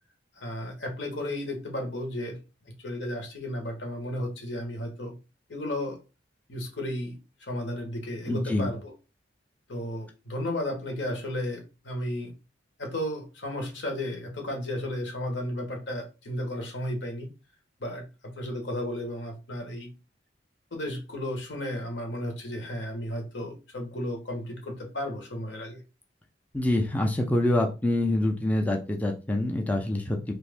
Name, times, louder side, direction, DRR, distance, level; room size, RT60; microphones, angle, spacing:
voice 1, 0.4-2.4 2.6-5.1 5.5-6.0 6.5-8.9 9.7-12.3 12.8-17.3 17.8-19.9 20.7-25.8, left 1 dB, 70° left, 2 dB, 1.1 m, -34 dB
voice 2, 8.3-8.7 26.5-30.3, left 1 dB, 10° left, 1 dB, 0.4 m, -26 dB
2.9 x 2.5 x 3.4 m, 0.30 s
head